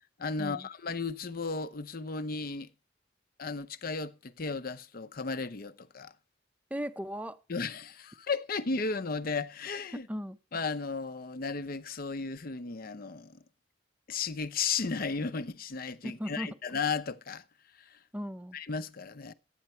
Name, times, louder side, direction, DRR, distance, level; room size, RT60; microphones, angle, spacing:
voice 1, 0.2-2.7 3.4-6.1 7.5-10.1 10.5-13.4 14.1-17.4 17.8-18.0 18.5-19.3, left 4 dB, 50° left, 0.7 m, -34 dB
voice 2, 6.7-7.4 9.9-10.4 16.0-16.5 18.1-18.6, equal, 10° right, 0.5 m, -37 dB
12.0 x 9.3 x 4.3 m
head